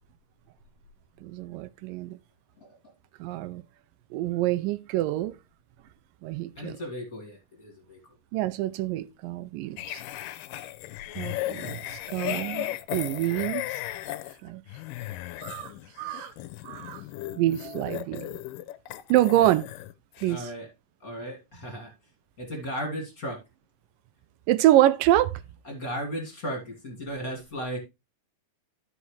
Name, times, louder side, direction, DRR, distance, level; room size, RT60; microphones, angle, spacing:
voice 1, 1.2-2.2 3.2-3.6 4.1-5.3 6.2-6.8 8.3-10.0 11.2-13.7 14.4-14.6 15.4-15.7 16.0-16.3 16.6-17.0 17.4-18.4 19.1-19.7 20.2-20.5 24.5-25.3, right 14 dB, 85° right, 2.3 m, -26 dB
voice 2, 6.6-8.0 17.1-17.5 20.3-20.7 21.0-21.9 22.4-23.4 25.6-27.8, equal, 30° left, 2.2 m, -36 dB
sound 1, 9.8-19.9 20.2-20.4, left 15 dB, 85° left, 2.3 m, -36 dB
13.0 x 5.6 x 3.2 m
omnidirectional pair, 3.8 m